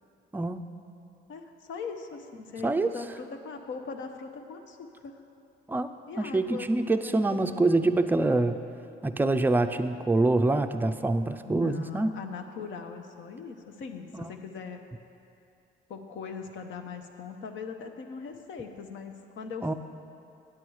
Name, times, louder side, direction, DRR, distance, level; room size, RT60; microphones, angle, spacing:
voice 1, 0.3-0.6 2.6-2.9 5.7-5.9 6.2-8.6 9.0-12.2 14.1-14.3 19.6-19.7, right 2 dB, 10° right, 8 dB, 0.4 m, -25 dB
voice 2, 1.7-5.2 6.1-6.7 7.0-7.6 11.5-14.8 15.9-19.7, left 5 dB, 75° left, 5 dB, 0.8 m, -40 dB
8.7 x 8.5 x 4.7 m, 2.6 s
cardioid pair, 90°, 20 cm